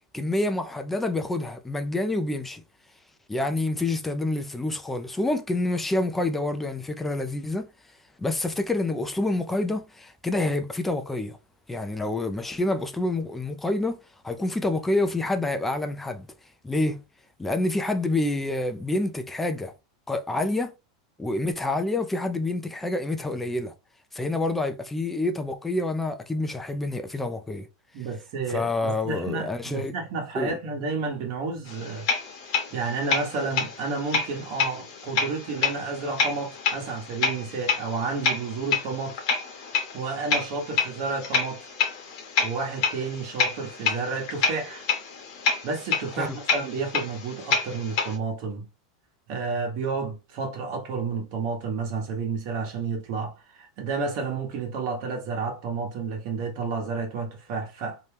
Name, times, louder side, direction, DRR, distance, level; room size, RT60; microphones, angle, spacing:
voice 1, 0.1-2.6 3.3-7.7 8.2-11.4 11.7-14.0 14.2-16.3 16.6-17.0 17.4-19.7 20.1-20.7 21.2-23.7 24.1-27.7 28.5-29.9 30.4-30.6 46.2-46.4, left 2 dB, 5° left, 0.4 m, -27 dB
voice 2, 27.9-32.1 32.7-39.2 39.9-41.7 42.4-44.9 45.6-48.7 49.3-58.0, right 4 dB, 50° right, 1.1 m, -31 dB
sound 1, 31.7-48.2, left 5 dB, 55° left, 0.9 m, -29 dB
2.8 x 2.2 x 3.3 m
supercardioid pair, 150°, 3 cm